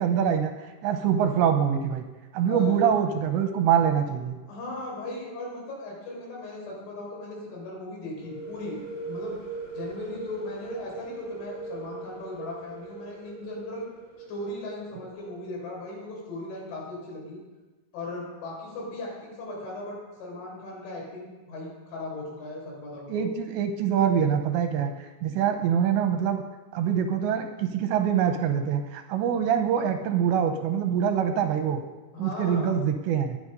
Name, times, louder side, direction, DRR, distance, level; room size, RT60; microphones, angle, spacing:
voice 1, 0.0-2.1 2.3-4.4 23.1-26.4 26.7-31.8 32.2-33.4, right 8 dB, 75° right, 6 dB, 2.8 m, -24 dB
voice 2, 2.4-2.9 4.5-8.8 9.1-9.4 9.7-13.9 14.3-17.4 17.9-23.3 32.1-32.8, left 2 dB, 70° left, -2 dB, 6.8 m, -37 dB
sound 1, 8.2-15.8, right 3 dB, 25° left, 2.7 m, -40 dB
21.0 x 8.6 x 5.3 m, 1.2 s
omnidirectional pair, 5.7 m